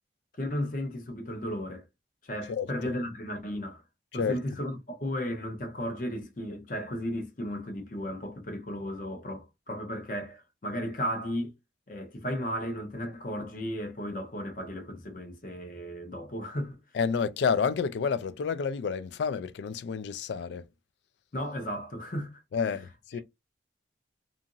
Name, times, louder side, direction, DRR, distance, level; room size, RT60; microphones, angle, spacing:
voice 1, 0.4-1.8 2.2-3.8 4.1-11.5 11.9-16.8 21.3-22.4 23.1-23.2, equal, 45° left, 0.7 m, -35 dB
voice 2, 2.5-2.9 4.1-4.4 16.9-20.7 22.5-23.2, left 6 dB, 70° left, 0.3 m, -30 dB
2.8 x 2.5 x 2.5 m
head